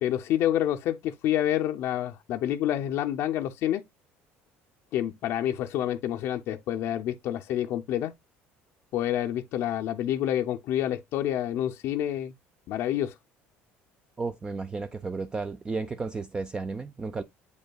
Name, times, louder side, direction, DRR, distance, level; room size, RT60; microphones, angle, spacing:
voice 1, 0.0-3.8 4.9-8.1 8.9-12.3 12.7-13.1, left 11 dB, 60° left, 0.5 m, -28 dB
voice 2, 14.2-17.2, right 4 dB, 15° right, 0.4 m, -33 dB
8.0 x 5.2 x 2.2 m
cardioid pair, 140°, 5 cm